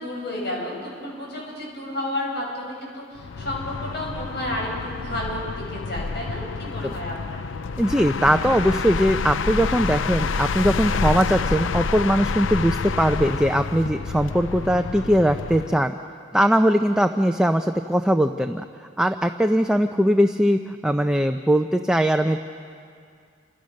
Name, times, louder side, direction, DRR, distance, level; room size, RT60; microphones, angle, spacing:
voice 1, 0.0-7.5, left 1 dB, 55° left, -2 dB, 7.3 m, -31 dB
sound 1, 3.2-15.9, left 4 dB, 80° left, 0.5 m, -28 dB
voice 2, 7.8-15.9 16.3-18.7 19.0-22.4, equal, 5° right, 5 dB, 0.6 m, -20 dB
29.0 x 25.0 x 6.5 m, 2.3 s
head